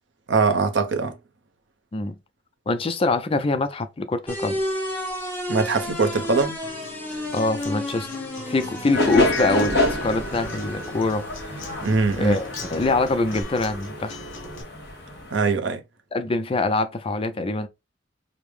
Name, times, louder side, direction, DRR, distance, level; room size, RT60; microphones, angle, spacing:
voice 1, 0.3-1.2 5.5-6.6 11.8-12.4 15.3-15.8, right 4 dB, 65° right, 0.7 m, -22 dB
voice 2, 2.7-4.5 7.3-8.1 8.5-11.6 12.2-14.2 16.1-17.7, left 3 dB, 30° left, 0.4 m, -24 dB
sound 1, 4.3-13.4, left 1 dB, 10° left, 1.0 m, -33 dB
Acoustic guitar, 6.6-14.6, left 2 dB, 80° left, 1.1 m, -41 dB
sound 2, 8.9-15.4, left 1 dB, 55° left, 1.8 m, -28 dB
5.0 x 2.0 x 3.1 m
head